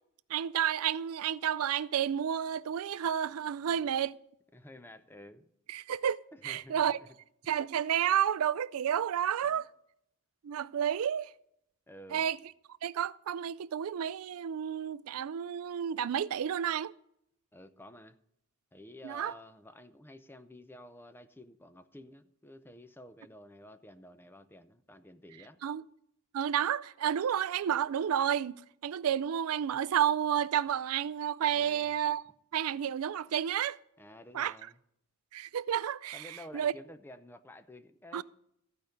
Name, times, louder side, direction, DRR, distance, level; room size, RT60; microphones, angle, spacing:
voice 1, 0.3-4.2 5.7-7.0 7.5-9.7 10.4-11.3 12.1-12.4 12.8-16.9 19.0-19.3 25.6-25.8 26.3-28.5 28.8-32.2 32.5-33.8 34.3-34.5 35.3-36.7 38.1-38.2, right 9 dB, 75° right, 0.4 m, -31 dB
voice 2, 4.5-5.5 6.3-7.1 9.4-9.6 11.9-12.3 17.5-18.2 18.7-25.6 31.5-31.9 34.0-34.8 36.1-38.2, left 1 dB, 10° left, 0.5 m, -51 dB
14.0 x 5.2 x 7.9 m
head